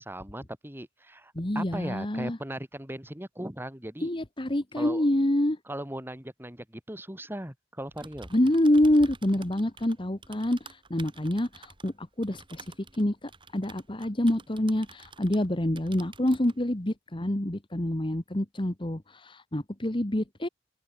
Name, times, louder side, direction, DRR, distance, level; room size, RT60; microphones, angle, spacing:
voice 1, 0.0-4.1 4.8-5.0 5.7-8.3, right 1 dB, 10° right, 4.0 m, -38 dB
voice 2, 1.3-2.4 4.0-5.6 8.3-12.6 13.0-20.5, left 1 dB, 30° left, 1.5 m, -27 dB
Typing, 7.8-15.5 15.8-16.6, right 4 dB, 30° right, 6.7 m, -50 dB
open air
head